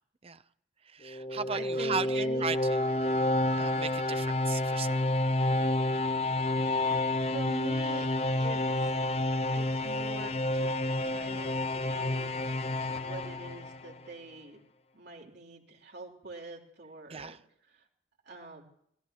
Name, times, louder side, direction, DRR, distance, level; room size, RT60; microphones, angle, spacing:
voice 1, 0.9-2.8 3.6-5.2 17.1-17.4, right 5 dB, 30° right, 12 dB, 0.7 m, -36 dB
sound 1, 1.0-14.1, left 2 dB, 35° left, 0.7 m, -29 dB
voice 2, 1.5-2.5 7.2-8.1 8.4-9.0 9.5-10.8 11.0-12.3 12.8-14.6 14.9-17.9 18.3-18.6, right 2 dB, 60° right, -1 dB, 3.6 m, -45 dB
26.5 x 18.0 x 3.0 m, 0.70 s
head